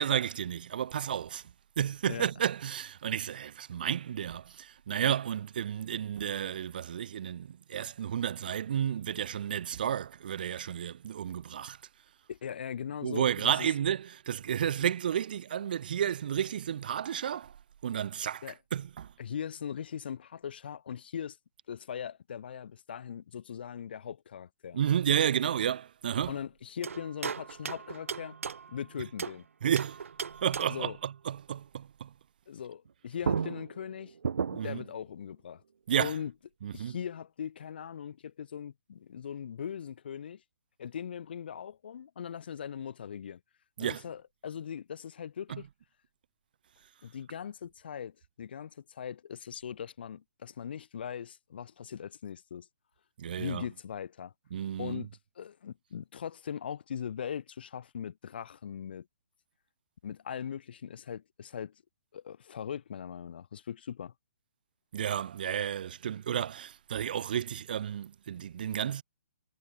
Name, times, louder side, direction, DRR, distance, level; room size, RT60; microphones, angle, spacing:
voice 1, 0.0-11.8 13.0-17.6 17.8-19.1 24.7-26.4 29.6-30.0 30.4-32.1 34.5-34.8 35.9-36.2 36.6-37.0 43.8-44.0 45.5-45.6 53.2-53.7 54.5-55.1 64.9-69.0, right 9 dB, 40° right, 0.9 m, -32 dB
voice 2, 12.3-13.7 18.4-18.5 19.2-21.4 21.7-24.8 26.3-28.4 28.7-29.4 30.7-31.0 32.5-34.1 34.5-35.6 36.0-36.3 36.7-40.4 40.8-43.4 43.8-45.7 47.0-52.7 53.4-54.3 54.8-55.1 55.4-59.1 60.0-61.7 62.1-64.1, left 8 dB, 50° left, 2.8 m, -40 dB
sound 1, 26.8-29.4 29.8-30.9 32.9-33.0 33.2-34.9, right 6 dB, 75° right, 0.7 m, -36 dB
hypercardioid pair, 170°, 7 cm